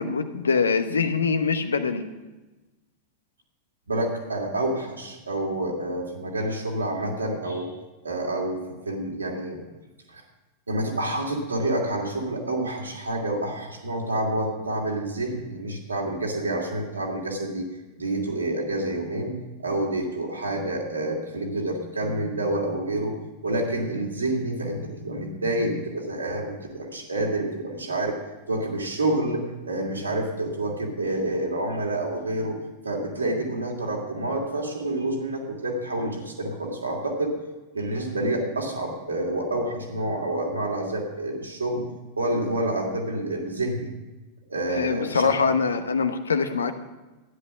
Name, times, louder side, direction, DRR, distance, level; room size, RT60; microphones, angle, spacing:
voice 1, 0.0-2.0 44.7-46.7, left 5 dB, 70° left, 10 dB, 0.9 m, -24 dB
voice 2, 3.9-7.7 8.0-9.6 10.1-10.2 10.7-17.7 18.0-28.2 28.5-32.6 32.8-37.4 37.7-41.9 42.2-43.9 44.5-45.3, right 1 dB, 80° right, 0 dB, 2.5 m, -28 dB
13.0 x 10.5 x 5.9 m, 1.1 s
figure-of-eight pair, 90°, 0 cm